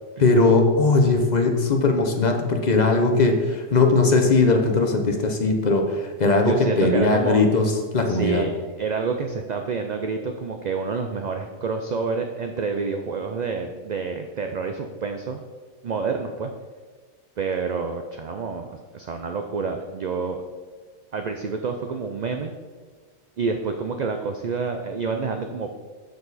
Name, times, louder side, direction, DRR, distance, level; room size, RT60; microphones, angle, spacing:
voice 1, 0.2-8.4, left 3 dB, 40° left, 4 dB, 0.9 m, -19 dB
voice 2, 6.4-7.4 8.0-15.4 15.8-16.5 17.4-20.4 21.1-22.5 23.4-25.7, right 4 dB, 55° right, 5 dB, 0.5 m, -28 dB
7.0 x 6.5 x 4.1 m, 1.4 s
omnidirectional pair, 1.2 m